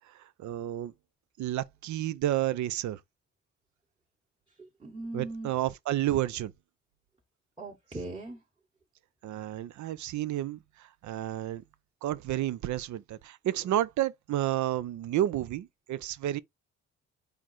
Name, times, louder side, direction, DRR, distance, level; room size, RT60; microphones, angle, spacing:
voice 1, 0.1-0.9 1.4-3.0 5.1-6.5 9.2-11.6 12.0-16.4, right 13 dB, 70° right, 0.6 m, -31 dB
voice 2, 4.8-5.5 7.6-8.4, right 2 dB, 15° right, 1.3 m, -39 dB
4.6 x 2.5 x 4.1 m
cardioid pair, 90°, 30 cm